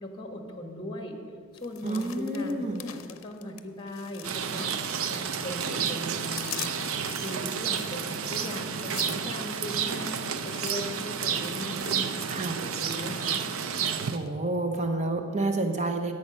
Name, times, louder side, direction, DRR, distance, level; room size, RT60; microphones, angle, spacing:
voice 1, 0.0-1.2 1.5-4.7 5.1-6.8 7.1-13.4, left 1 dB, 25° left, 4 dB, 1.5 m, -38 dB
sound 1, 1.5-5.4 5.6-12.6 12.8-13.2 13.6-14.3 14.7-14.8, left 12 dB, 70° left, 0.6 m, -44 dB
voice 2, 1.8-2.8 12.3-12.6 14.1-16.1, right 2 dB, 35° right, 6 dB, 0.8 m, -29 dB
Rain, 4.2-14.2, right 7 dB, 80° right, 0.6 m, -31 dB
11.0 x 8.5 x 6.4 m, 2.1 s
head